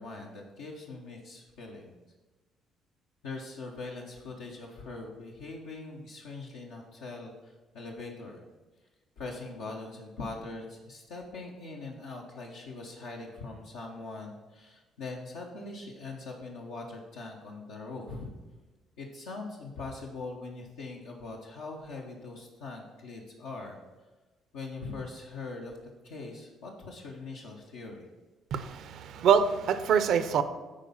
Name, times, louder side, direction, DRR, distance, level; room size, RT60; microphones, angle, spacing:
voice 1, 0.0-1.9 3.2-8.4 9.2-18.3 19.0-23.8 24.5-25.8 26.0-28.1, left 3 dB, 85° left, -3 dB, 0.9 m, -42 dB
voice 2, 28.5-30.4, right 7 dB, 65° right, 11 dB, 0.6 m, -25 dB
8.8 x 4.3 x 5.5 m, 1.2 s
hypercardioid pair, 55°, 0 cm